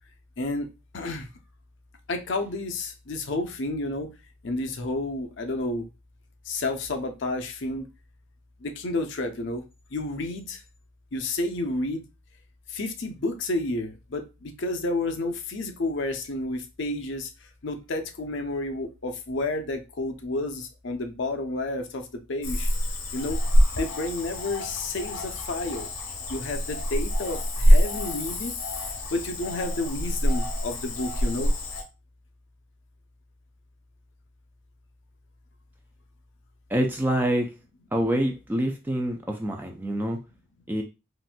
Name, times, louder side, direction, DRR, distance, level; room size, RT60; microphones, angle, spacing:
voice 1, 0.4-0.7 0.9-1.3 2.1-4.1 4.4-5.9 6.4-7.9 8.6-9.6 9.9-10.6 11.1-12.0 12.7-22.7 23.1-23.4 23.7-25.9 26.3-28.5 29.1-31.5, left 2 dB, 60° left, 5 dB, 0.6 m, -30 dB
Cricket / Frog, 22.4-31.8, equal, 75° left, 0.9 m, -25 dB
voice 2, 36.7-37.5 37.9-40.2 40.7-40.8, right 1 dB, 10° right, 3 dB, 0.3 m, -26 dB
3.9 x 2.5 x 2.2 m, 0.28 s
head